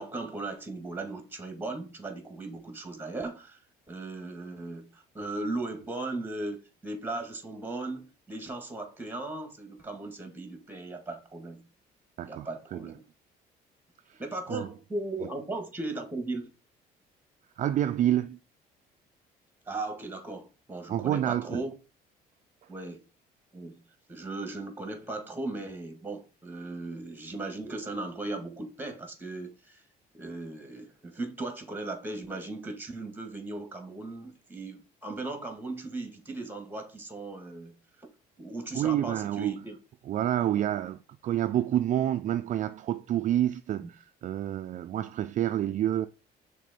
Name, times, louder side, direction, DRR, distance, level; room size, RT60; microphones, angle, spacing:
voice 1, 0.0-3.6 3.9-11.6 12.2-13.0 14.2-16.5 19.7-21.7 22.7-23.0 23.5-23.8 24.1-29.8 30.1-38.1 38.4-39.8 40.6-40.7 43.8-43.9, right 2 dB, 10° right, 1.9 m, -37 dB
voice 2, 12.2-12.9 14.1-14.2 14.5-14.7 17.6-18.4 20.9-21.6 38.7-39.5 40.1-46.1, right 12 dB, 50° right, 0.4 m, -28 dB
6.0 x 3.8 x 4.2 m
cardioid pair, 110°, 17 cm